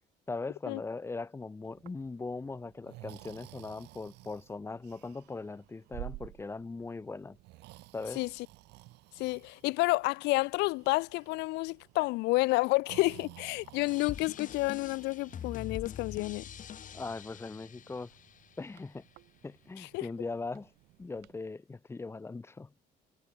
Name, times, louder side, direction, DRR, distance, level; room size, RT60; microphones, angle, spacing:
voice 1, 0.3-7.4 7.9-8.2 16.9-18.1 18.6-19.0 19.4-20.7 21.0-22.7, left 3 dB, 15° left, 0.6 m, -40 dB
Breathing, 1.6-21.3, right 19 dB, 90° right, 3.6 m, -53 dB
voice 2, 9.2-16.4 19.8-20.1, left 23 dB, 85° left, 0.4 m, -30 dB
sound 1, 13.9-18.8, left 9 dB, 50° left, 4.5 m, -44 dB
cardioid pair, 110°, 17 cm